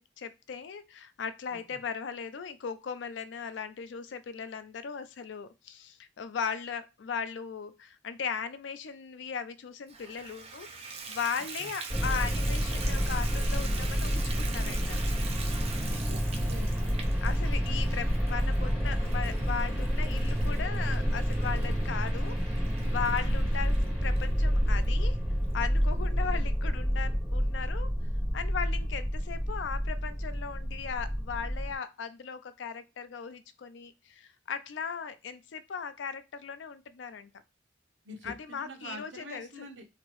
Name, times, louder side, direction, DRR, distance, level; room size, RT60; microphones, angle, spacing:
voice 1, 0.0-10.7 11.1-15.0 17.2-25.2 25.5-27.9 28.3-37.3 38.2-39.5, left 6 dB, 70° left, 0.4 m, -37 dB
Water tap faucet / Bathtub (filling or washing), 9.9-24.3 24.8-24.9 25.4-25.5 25.8-25.9, right 5 dB, 35° right, 0.5 m, -44 dB
sound 1, 11.9-31.7, equal, 5° right, 1.6 m, -29 dB
voice 2, 16.1-16.8 26.0-26.4 38.0-39.8, equal, 80° right, 0.9 m, -46 dB
2.9 x 2.6 x 3.0 m
head